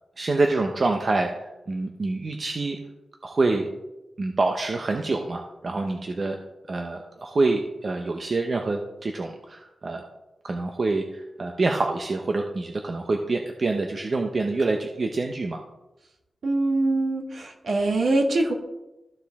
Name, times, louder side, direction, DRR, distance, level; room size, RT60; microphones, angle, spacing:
voice 1, 0.2-2.8 3.2-3.7 4.2-6.4 6.7-10.0 10.4-15.6, right 3 dB, 35° right, 3 dB, 0.6 m, -26 dB
voice 2, 16.4-18.5, right 2 dB, 60° right, 1 dB, 1.5 m, -23 dB
14.0 x 4.9 x 3.5 m, 0.98 s
wide cardioid pair, 165°, 0 cm